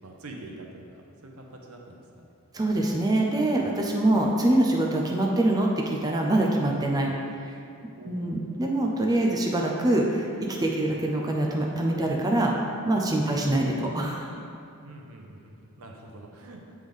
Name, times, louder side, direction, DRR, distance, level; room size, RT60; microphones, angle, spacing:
voice 1, 0.0-2.3 3.6-4.0 8.0-8.4 10.9-11.0 13.3-13.6 14.8-16.7, right 2 dB, 80° right, 1 dB, 0.9 m, -46 dB
voice 2, 2.5-7.1 7.5-7.6 8.0-12.5 12.9-14.3, right 1 dB, 20° right, 0 dB, 0.5 m, -24 dB
7.8 x 3.6 x 5.2 m, 2.6 s
head